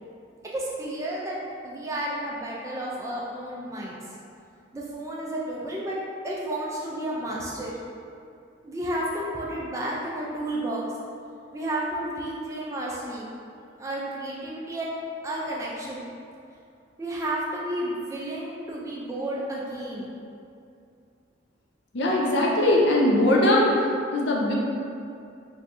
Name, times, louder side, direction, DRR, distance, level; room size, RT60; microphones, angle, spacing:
voice 1, 0.5-1.4 1.6-4.0 4.7-6.0 6.2-7.7 8.6-10.8 11.5-13.3 13.8-15.0 15.2-16.1 17.0-20.1, right 1 dB, 15° right, -4 dB, 0.3 m, -31 dB
voice 2, 21.9-23.7 24.1-24.5, left 1 dB, 65° left, -2 dB, 0.5 m, -20 dB
2.6 x 2.3 x 4.0 m, 2.5 s
head